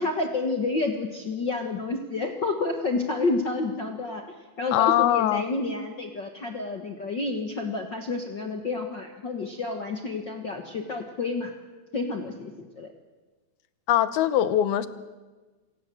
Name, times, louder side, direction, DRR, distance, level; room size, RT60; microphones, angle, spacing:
voice 1, 0.0-4.2 4.6-11.5 11.9-12.9, left 3 dB, 60° left, 4 dB, 1.1 m, -29 dB
voice 2, 4.7-5.4 13.9-14.9, left 12 dB, 80° left, 13 dB, 2.9 m, -22 dB
28.0 x 17.0 x 7.8 m, 1.3 s
omnidirectional pair, 4.4 m